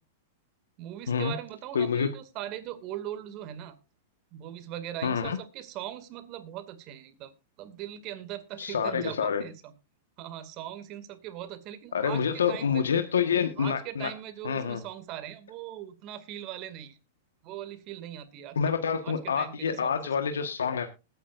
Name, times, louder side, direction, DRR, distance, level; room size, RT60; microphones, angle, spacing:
voice 1, 0.8-3.8 4.3-7.3 7.6-9.7 10.2-12.9 13.6-17.0 17.4-18.6 19.0-20.4, right 12 dB, 45° right, 11 dB, 2.2 m, -40 dB
voice 2, 1.7-2.1 5.0-5.4 8.6-9.4 11.9-14.1 14.4-14.8 18.5-20.9, left 7 dB, 90° left, 7 dB, 1.3 m, -27 dB
20.5 x 9.1 x 2.5 m, 0.27 s
hypercardioid pair, 120°, 0 cm